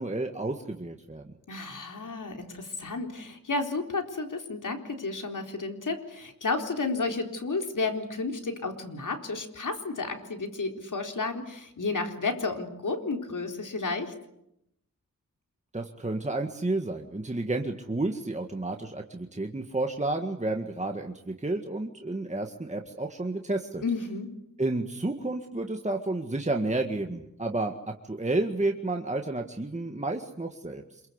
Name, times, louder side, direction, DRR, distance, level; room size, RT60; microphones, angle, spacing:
voice 1, 0.0-1.3 15.7-23.8 24.6-31.0, right 2 dB, 20° right, 3 dB, 1.9 m, -31 dB
voice 2, 1.5-14.1 23.8-24.3, left 3 dB, 65° left, 4 dB, 4.1 m, -32 dB
27.0 x 23.0 x 8.1 m, 0.79 s
wide cardioid pair, 90°, 33 cm